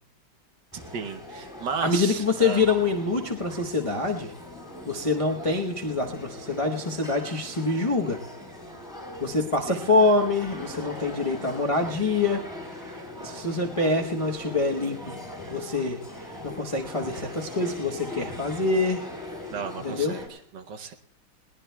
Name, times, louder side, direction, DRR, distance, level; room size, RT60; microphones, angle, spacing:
sound 1, 0.7-20.3, left 1 dB, ahead, 3.5 m, -40 dB
voice 1, 0.9-2.6 9.7-9.9 19.5-20.9, right 5 dB, 65° right, 7 dB, 1.3 m, -34 dB
voice 2, 1.8-4.3 4.9-8.2 9.2-12.4 12.9-13.0 13.2-15.2 15.5-16.0 16.4-19.1 19.8-20.1, left 3 dB, 60° left, 0 dB, 0.3 m, -25 dB
21.5 x 18.5 x 2.2 m, 0.68 s
omnidirectional pair, 2.4 m